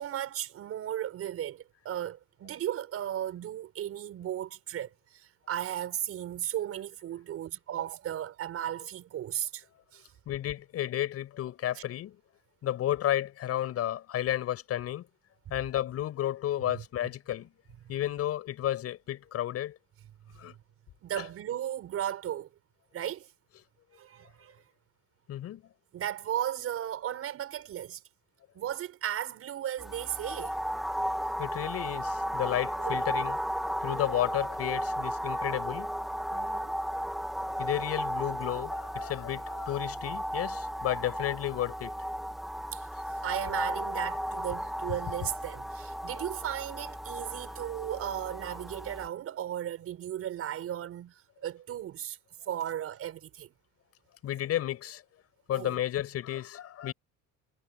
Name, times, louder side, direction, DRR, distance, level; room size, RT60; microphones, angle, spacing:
voice 1, 0.0-9.6 9.9-10.1 11.7-11.8 21.0-22.5 22.9-23.3 23.9-24.6 25.9-28.0 28.5-30.5 32.8-33.0 36.3-36.7 42.7-52.2 52.5-53.5 55.5-55.8, right 11 dB, 45° right, 5.8 m, -36 dB
voice 2, 10.3-12.2 12.6-15.1 15.5-17.5 17.9-19.8 20.4-20.5 25.3-25.6 31.4-33.4 33.8-35.9 37.6-41.9 54.2-55.0 55.5-56.9, left 12 dB, 45° left, 6.9 m, -32 dB
sound 1, 29.8-49.1, equal, ahead, 2.1 m, -35 dB
cardioid pair, 170°, 33 cm